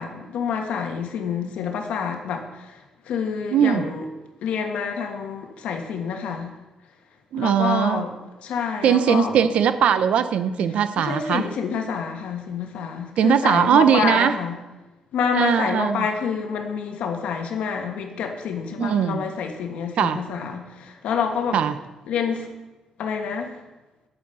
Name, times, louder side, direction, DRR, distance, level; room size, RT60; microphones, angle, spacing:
voice 1, 0.0-4.1 4.4-6.5 7.4-8.1 8.4-9.4 11.0-14.6 15.1-21.6 22.1-22.5 23.0-23.6, left 6 dB, 85° left, 4 dB, 1.5 m, -27 dB
voice 2, 3.5-3.9 7.3-8.0 8.8-11.5 13.2-14.3 15.3-16.1 18.8-19.2 20.0-20.2 21.5-21.8, right 8 dB, 75° right, 12 dB, 0.7 m, -20 dB
8.8 x 8.8 x 5.7 m, 1.1 s
cardioid pair, 105°, 2 cm